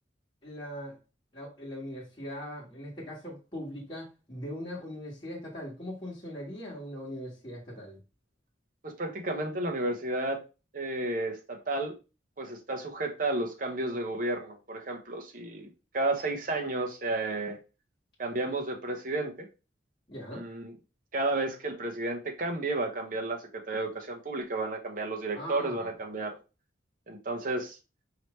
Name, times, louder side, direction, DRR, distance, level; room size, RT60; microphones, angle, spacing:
voice 1, 0.4-1.0 1.3-8.0 20.1-20.5 25.3-25.9, equal, 25° left, 1.5 m, -40 dB
voice 2, 8.8-10.4 10.7-11.9 12.4-17.6 18.2-19.5 20.3-20.7 21.1-26.4 27.1-27.8, right 2 dB, 45° right, 0.9 m, -32 dB
4.9 x 3.1 x 3.1 m
head